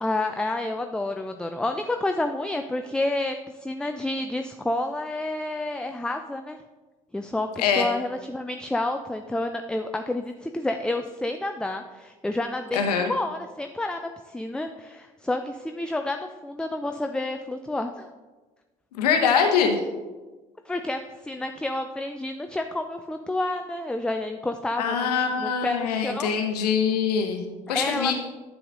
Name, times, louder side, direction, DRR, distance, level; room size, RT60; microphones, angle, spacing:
voice 1, 0.0-6.6 7.1-18.1 20.7-26.3 27.7-28.2, left 2 dB, 5° left, 6 dB, 0.4 m, -29 dB
voice 2, 12.7-13.1 18.9-19.8 24.8-28.2, left 6 dB, 75° left, 5 dB, 0.9 m, -23 dB
10.5 x 7.1 x 2.6 m, 1.3 s
figure-of-eight pair, 55°, 20 cm